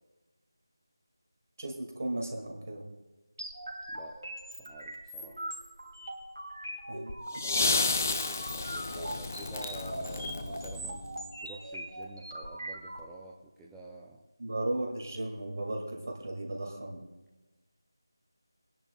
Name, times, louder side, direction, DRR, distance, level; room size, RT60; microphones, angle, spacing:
voice 1, 1.6-2.8 6.9-7.1 14.4-17.0, right 1 dB, 45° right, 1 dB, 2.1 m, -35 dB
sound 1, 3.4-13.0, right 1 dB, 60° right, 2.6 m, -41 dB
voice 2, 4.5-5.4 7.3-11.0 11.4-14.2, right 2 dB, 5° right, -5 dB, 0.4 m, -48 dB
sound 2, 7.1-11.3 12.4-12.5, left 3 dB, 35° left, 0.7 m, -32 dB
27.5 x 10.5 x 2.3 m, 1.1 s
figure-of-eight pair, 165°, 2 cm